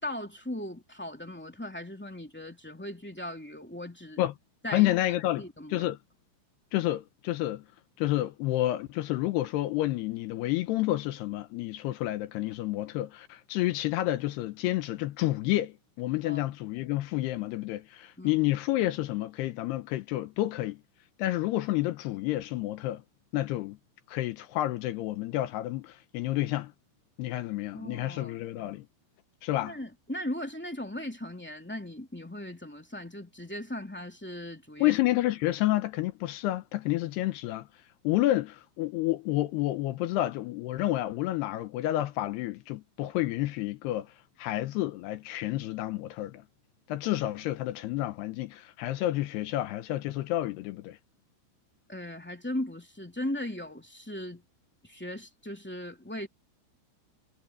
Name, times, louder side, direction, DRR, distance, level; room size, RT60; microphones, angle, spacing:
voice 1, 0.0-4.2 4.6-4.9 5.4-5.9 16.2-16.4 18.2-18.4 27.7-28.4 29.6-35.0 51.9-54.4 54.8-56.3, left 1 dB, 5° left, 0.9 m, -38 dB
voice 2, 4.7-5.5 5.7-6.0 6.7-7.6 8.0-20.8 21.2-23.0 23.3-23.8 24.1-26.7 27.2-28.9 29.4-29.8 34.8-37.7 38.0-44.1 44.4-46.4 46.9-51.0, left 15 dB, 75° left, 2.5 m, -29 dB
omnidirectional pair, 5.7 m